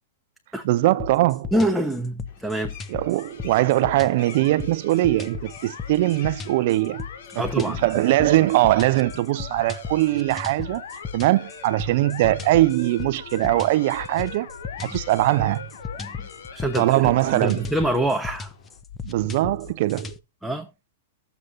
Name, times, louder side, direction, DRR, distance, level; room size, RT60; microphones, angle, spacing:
voice 1, 0.6-1.5 2.9-7.1 7.3-10.8 11.1-14.5 14.8-15.7 16.8-17.7 19.0-20.2, right 17 dB, 55° right, 0.6 m, -21 dB
sound 1, 1.0-20.2, left 6 dB, 20° left, 0.9 m, -36 dB
voice 2, 1.5-2.7 7.3-8.0 16.0-18.5 20.4-20.7, right 1 dB, ahead, 1.1 m, -26 dB
sound 2, 2.3-18.8, left 6 dB, 55° left, 3.4 m, -51 dB
sound 3, 3.2-18.3, left 6 dB, 75° left, 2.0 m, -42 dB
12.5 x 8.0 x 2.6 m
hypercardioid pair, 135°, 0 cm